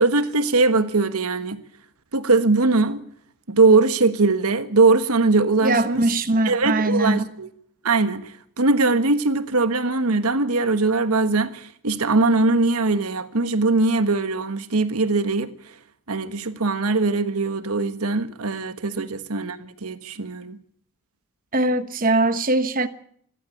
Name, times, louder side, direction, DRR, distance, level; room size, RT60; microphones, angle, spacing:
voice 1, 0.0-1.6 2.1-3.0 3.5-6.1 6.4-7.5 7.8-15.5 16.1-20.6, right 3 dB, 90° right, 1.4 m, -21 dB
voice 2, 5.6-7.3 19.0-19.1 21.5-22.9, right 2 dB, 40° right, 1.1 m, -21 dB
27.0 x 12.5 x 8.5 m
head